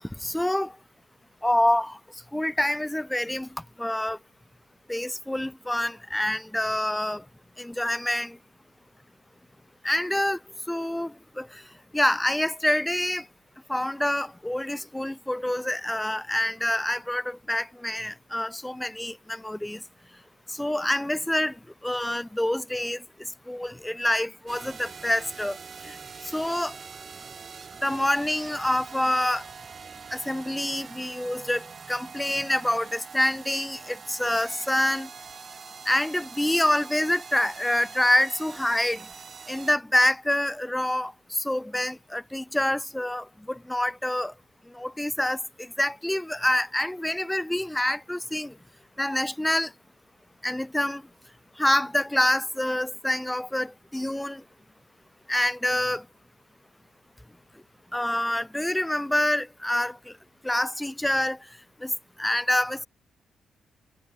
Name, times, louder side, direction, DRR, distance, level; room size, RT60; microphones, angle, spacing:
voice 1, 0.2-0.8 1.4-2.0 2.3-3.5 3.8-4.2 4.9-7.2 7.6-8.4 9.8-10.4 10.7-11.6 11.9-13.3 13.7-19.8 20.5-21.6 21.8-23.0 23.5-25.6 25.8-26.0 26.2-26.7 27.8-29.4 30.1-35.1 35.9-39.1 39.5-44.3 44.7-48.5 49.0-49.7 50.4-51.0 51.6-54.4 55.3-56.0 57.9-60.1 60.4-61.4 61.8-61.9 62.2-62.9, left 1 dB, 10° left, 0.3 m, -26 dB
sound 1, 24.5-39.8, right 6 dB, 45° right, 1.8 m, -44 dB
cardioid pair, 70°, 0 cm